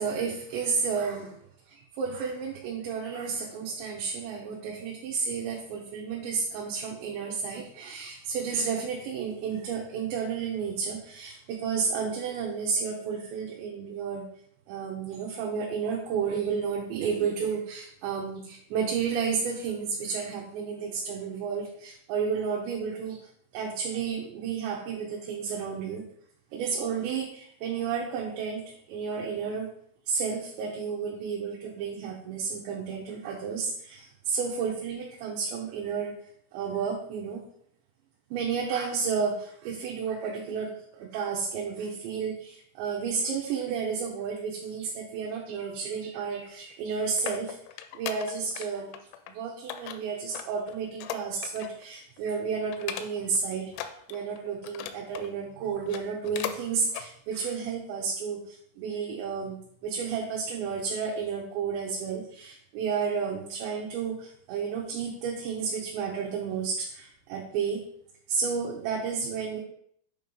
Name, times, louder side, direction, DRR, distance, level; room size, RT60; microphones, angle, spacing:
voice 1, 0.0-1.3 1.7-14.3 14.7-23.2 23.5-26.0 26.5-29.7 30.1-36.1 36.5-37.4 38.3-47.6 47.9-48.9 49.3-67.8 68.3-69.6, right 6 dB, 75° right, -1 dB, 2.7 m, -32 dB
sound 1, 46.7-48.7 48.9-49.3 49.7-51.8 52.2-52.3 52.7-53.4 53.7-55.3 55.8-56.6 56.9-57.1 57.6-57.7, left 10 dB, 85° left, 3.2 m, -38 dB
8.4 x 3.0 x 5.2 m, 0.67 s
omnidirectional pair, 5.8 m